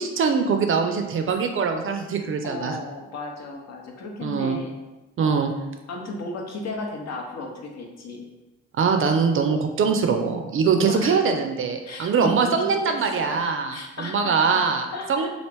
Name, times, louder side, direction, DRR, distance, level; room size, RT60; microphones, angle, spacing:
voice 1, 0.0-2.8 4.2-4.6 5.2-5.5 8.8-15.3, right 5 dB, 45° right, 5 dB, 0.4 m, -23 dB
voice 2, 2.4-4.8 5.2-5.5 5.9-8.3 10.8-11.2 11.8-12.5 12.9-13.4 13.7-14.6 14.9-15.3, left 2 dB, 60° left, 1 dB, 0.7 m, -34 dB
3.0 x 2.5 x 3.3 m, 1.1 s
cardioid pair, 90°, 30 cm